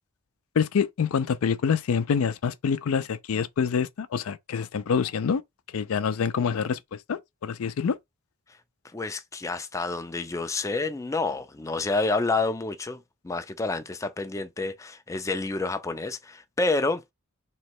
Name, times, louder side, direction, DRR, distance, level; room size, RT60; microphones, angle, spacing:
voice 1, 0.6-5.4 5.7-6.8 7.1-8.0, left 6 dB, 90° left, 0.4 m, -26 dB
voice 2, 8.9-17.0, left 3 dB, 15° left, 0.4 m, -29 dB
3.1 x 3.0 x 4.6 m
head